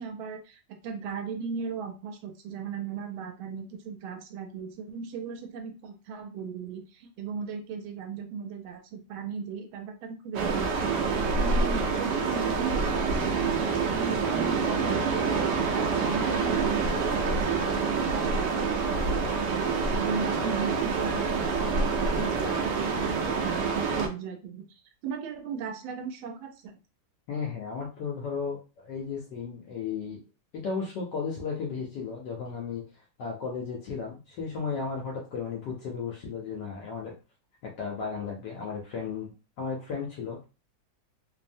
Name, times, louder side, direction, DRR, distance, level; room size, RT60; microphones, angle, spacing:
voice 1, 0.0-11.0 11.4-15.1 15.6-26.8, right 5 dB, 90° right, 5 dB, 1.4 m, -37 dB
sound 1, 10.3-24.1, right 4 dB, 75° right, 1.1 m, -27 dB
voice 2, 27.3-30.2 30.5-32.8 33.2-37.1 37.6-40.4, left 5 dB, 70° left, -1 dB, 1.1 m, -34 dB
3.2 x 2.0 x 2.5 m, 0.32 s
omnidirectional pair, 2.1 m